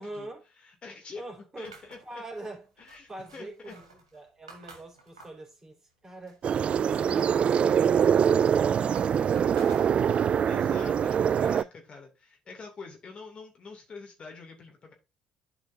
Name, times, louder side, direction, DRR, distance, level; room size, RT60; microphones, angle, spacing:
voice 1, 0.0-0.4 1.2-2.8 3.1-6.4, right 1 dB, 20° right, 3.7 m, -44 dB
voice 2, 0.6-1.2 1.6-2.2 2.8-3.7 10.5-14.9, left 4 dB, 40° left, 2.4 m, -45 dB
sound 1, 1.6-5.5 5.9-7.0 7.3-10.3, right 3 dB, 85° right, 1.9 m, -52 dB
sound 2, 6.4-11.6, right 8 dB, 40° right, 0.3 m, -24 dB
11.5 x 5.1 x 2.6 m
figure-of-eight pair, 55°, 3 cm